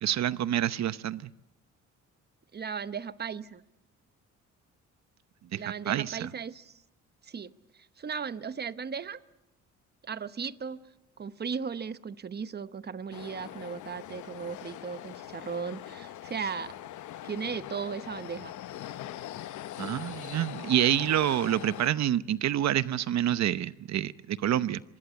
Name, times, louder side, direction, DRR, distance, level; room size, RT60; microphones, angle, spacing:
voice 1, 0.0-1.3 5.5-5.6 5.9-6.3 19.8-24.8, right 11 dB, 65° right, 15 dB, 0.8 m, -27 dB
voice 2, 2.5-3.6 5.5-6.7 7.3-9.2 10.0-10.8 11.2-16.7 17.2-18.5, right 6 dB, 35° right, 13 dB, 1.0 m, -36 dB
sound 1, 13.1-21.9, left 12 dB, 75° left, 0.9 m, -42 dB
25.5 x 20.5 x 8.1 m, 0.94 s
cardioid pair, 90°, 30 cm